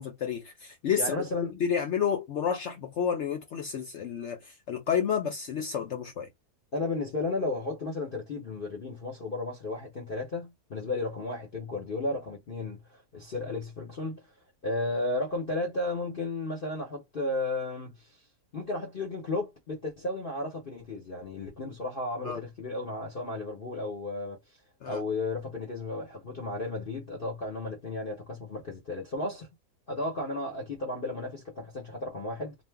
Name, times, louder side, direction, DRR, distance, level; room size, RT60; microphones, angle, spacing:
voice 1, 0.0-1.1 1.6-6.3 22.2-22.4 24.8-25.0, left 7 dB, 70° left, 0.6 m, -30 dB
voice 2, 1.0-1.5 6.7-14.3 14.6-18.2 18.5-24.4 24.9-29.5 29.9-32.6, left 2 dB, 40° left, 0.9 m, -34 dB
2.5 x 2.4 x 3.4 m
omnidirectional pair, 1.7 m